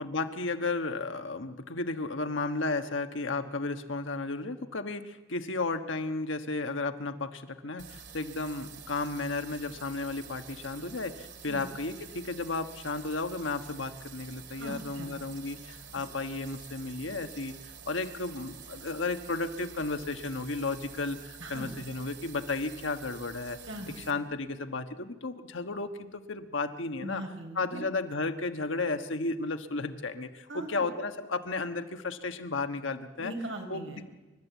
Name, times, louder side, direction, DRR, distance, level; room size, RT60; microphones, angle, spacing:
voice 1, 0.0-17.5 17.9-23.6 24.1-27.2 27.5-33.3 33.7-34.0, left 3 dB, 70° left, 7 dB, 1.4 m, -33 dB
sound 1, 7.8-24.1, right 7 dB, 60° right, 2.4 m, -48 dB
voice 2, 14.5-15.1 16.0-16.1 21.4-21.7 23.7-24.2 27.0-27.8 30.5-30.8 33.2-34.0, right 1 dB, 80° right, 4 dB, 4.5 m, -40 dB
28.0 x 13.5 x 8.3 m, 1.1 s
head